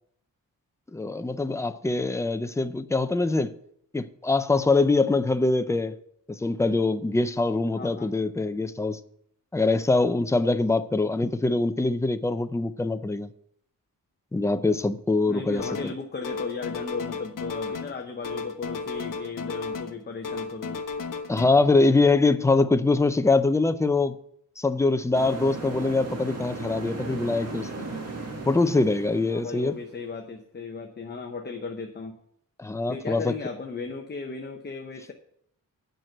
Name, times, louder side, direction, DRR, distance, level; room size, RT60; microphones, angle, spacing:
voice 1, 0.9-3.5 3.9-6.0 6.3-9.0 9.5-13.3 14.3-15.9 21.3-24.2 24.6-27.8 28.5-29.8 32.6-33.3, left 3 dB, 10° left, 0.4 m, -23 dB
voice 2, 7.7-8.1 15.3-20.8 29.3-32.2 32.9-35.1, left 4 dB, 30° left, 0.8 m, -36 dB
sound 1, 15.6-16.0 16.2-18.0 18.2-20.0 20.2-21.5, left 4 dB, 65° left, 1.0 m, -34 dB
sound 2, 25.1-30.0, right 3 dB, 45° right, 1.9 m, -37 dB
9.2 x 6.0 x 7.8 m
wide cardioid pair, 165°, 34 cm